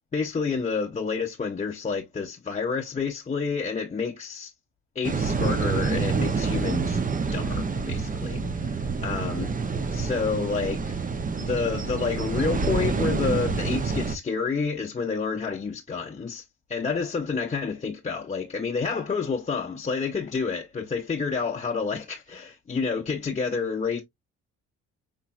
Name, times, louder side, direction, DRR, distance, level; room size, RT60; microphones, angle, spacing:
voice 1, 0.1-4.5 5.0-7.0 7.3-9.5 9.9-16.4 16.7-24.0, left 5 dB, 25° left, 0.7 m, -29 dB
sound 1, 5.0-14.2, right 4 dB, 25° right, 0.7 m, -27 dB
5.5 x 3.1 x 2.4 m
cardioid pair, 90°, 30 cm